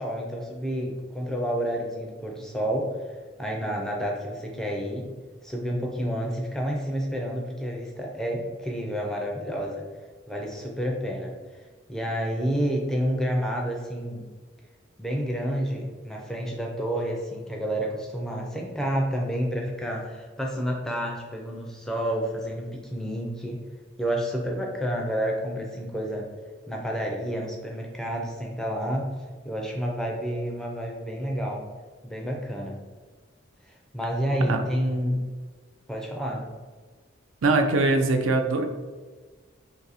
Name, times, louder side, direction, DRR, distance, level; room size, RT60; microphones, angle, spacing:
voice 1, 0.0-3.0 3.4-5.1 5.4-9.8 10.3-11.6 11.9-14.3 15.0-23.6 24.0-26.3 26.7-29.1 29.4-31.7 32.0-32.8 33.7-35.2 35.9-36.5, equal, ahead, -1 dB, 0.4 m, -29 dB
voice 2, 37.4-38.7, right 3 dB, 80° right, 6 dB, 0.4 m, -22 dB
2.6 x 2.6 x 4.0 m, 1.4 s
head